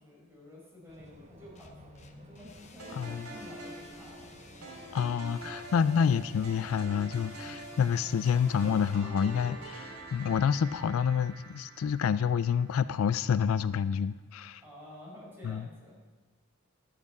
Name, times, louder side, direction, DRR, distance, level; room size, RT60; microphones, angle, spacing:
voice 1, 0.0-3.0 3.3-4.5 14.6-16.0, left 1 dB, 10° right, -6 dB, 4.8 m, -51 dB
sound 1, 0.9-11.3, right 1 dB, 35° right, 0.9 m, -55 dB
sound 2, 1.6-9.0, left 4 dB, 30° left, 0.9 m, -55 dB
sound 3, 2.8-13.1, right 1 dB, 75° right, 3.0 m, -46 dB
voice 2, 2.9-3.3 4.9-14.6 15.4-15.7, left 7 dB, 70° left, 15 dB, 0.3 m, -28 dB
11.5 x 6.8 x 8.3 m, 1.3 s
head